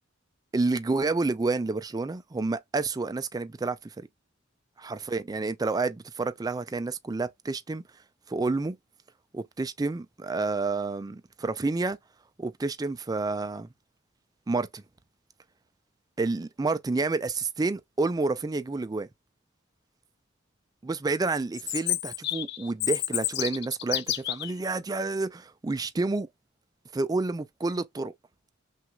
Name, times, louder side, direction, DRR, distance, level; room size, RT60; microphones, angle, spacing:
voice 1, 0.5-3.9 4.8-7.8 8.3-8.8 9.3-12.0 12.4-13.7 14.5-14.8 16.2-19.1 20.8-26.3 26.9-28.1, right 3 dB, 20° right, 0.3 m, -29 dB
Chirp tweet, 21.5-24.5, left 14 dB, 55° left, 0.3 m, -30 dB
5.9 x 2.5 x 2.2 m
head